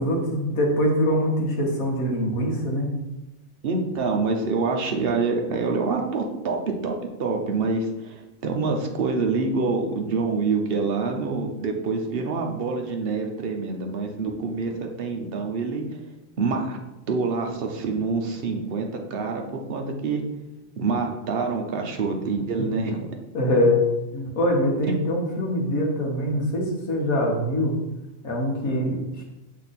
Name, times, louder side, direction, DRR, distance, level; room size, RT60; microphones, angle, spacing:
voice 1, 0.0-2.9 23.3-23.8 24.1-27.8 28.2-29.2, equal, 80° left, -1 dB, 1.7 m, -23 dB
voice 2, 3.6-15.9 16.4-16.8 17.1-20.2 20.8-23.1, right 4 dB, 50° right, 3 dB, 0.9 m, -26 dB
6.3 x 3.6 x 4.1 m, 1.0 s
omnidirectional pair, 1.5 m